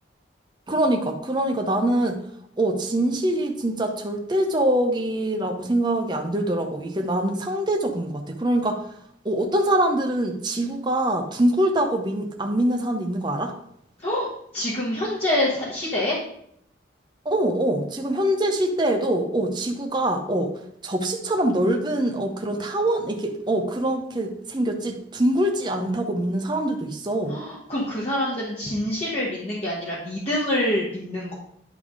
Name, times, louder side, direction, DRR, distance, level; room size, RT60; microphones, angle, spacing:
voice 1, 0.7-2.2 2.6-8.8 9.2-13.5 17.2-20.5 20.8-27.3, right 1 dB, 25° right, 3 dB, 0.7 m, -24 dB
voice 2, 14.0-16.2 27.3-31.3, left 1 dB, 35° left, -7 dB, 1.4 m, -26 dB
10.0 x 3.5 x 4.9 m, 0.72 s
head